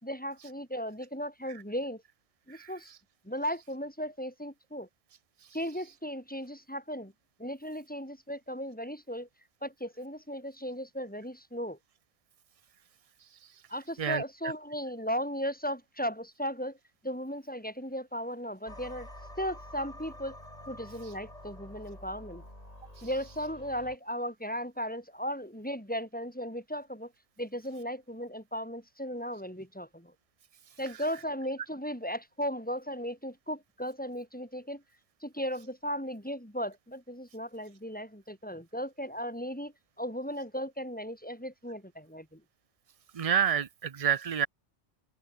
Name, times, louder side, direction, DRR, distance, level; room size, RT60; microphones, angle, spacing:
voice 1, 0.0-2.0 2.5-2.9 3.2-4.9 5.5-7.1 7.4-9.3 9.6-11.8 13.7-16.8 17.0-19.1 19.4-20.4 20.7-22.4 23.0-27.1 27.4-30.1 30.8-34.8 35.2-42.4, equal, 5° left, 6.6 m, -36 dB
sound 1, 18.7-24.0, left 1 dB, 30° left, 7.5 m, -48 dB
voice 2, 43.1-44.5, right 8 dB, 40° right, 0.6 m, -28 dB
omnidirectional pair, 1.3 m